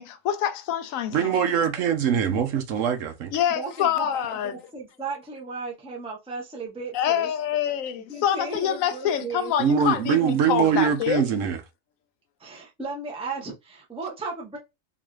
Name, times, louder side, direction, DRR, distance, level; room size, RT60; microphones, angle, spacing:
voice 1, 0.0-1.4 3.3-4.5 6.9-11.2, left 9 dB, 85° left, 1.0 m, -26 dB
voice 2, 1.1-3.3 9.6-11.6, right 7 dB, 80° right, 1.1 m, -23 dB
voice 3, 3.5-7.3 7.7-7.8 8.1-9.5 12.4-14.6, right 4 dB, 5° right, 0.7 m, -35 dB
3.8 x 2.5 x 3.1 m
omnidirectional pair, 1.4 m